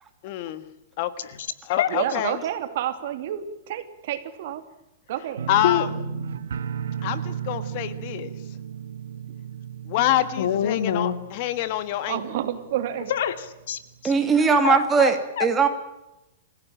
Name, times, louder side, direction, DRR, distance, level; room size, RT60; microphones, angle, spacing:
voice 1, 0.2-0.6 1.0-1.1 1.7-2.4 5.5-5.9 7.0-8.3 9.9-12.2, left 13 dB, 45° left, 13 dB, 1.6 m, -26 dB
voice 2, 1.2-2.0 5.6-5.8 10.4-11.2 13.1-14.1 14.6-15.1 15.4-15.5, left 9 dB, 65° left, 10 dB, 2.5 m, -26 dB
voice 3, 1.9-4.6 5.1-5.5 12.1-13.1, right 11 dB, 55° right, 9 dB, 2.9 m, -29 dB
sound 1, 5.4-12.2 12.5-13.1 13.4-13.5, right 7 dB, 90° right, 1.4 m, -34 dB
voice 4, 14.0-15.7, right 5 dB, 15° right, 6 dB, 2.9 m, -19 dB
27.0 x 16.5 x 9.1 m, 0.93 s
hypercardioid pair, 160°, 0 cm